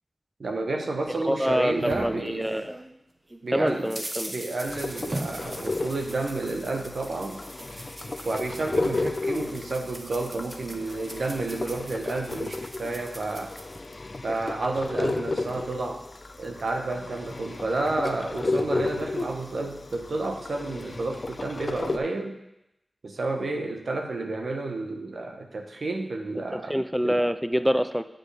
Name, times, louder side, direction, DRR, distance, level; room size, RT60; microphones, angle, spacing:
voice 1, 0.4-2.7 3.4-4.0 4.3-7.4 8.2-13.6 14.2-16.0 16.4-22.4 23.0-26.8 27.0-27.2, right 2 dB, 80° right, 3 dB, 0.9 m, -31 dB
sound 1, 1.1-2.9 3.3-13.8, right 1 dB, 35° right, 1.0 m, -41 dB
voice 2, 1.3-2.8 3.5-4.3 26.5-28.0, equal, ahead, 11 dB, 0.3 m, -26 dB
sound 2, 4.7-22.0, left 2 dB, 50° left, 0.5 m, -33 dB
8.8 x 7.7 x 3.4 m, 0.87 s
wide cardioid pair, 65°, 0 cm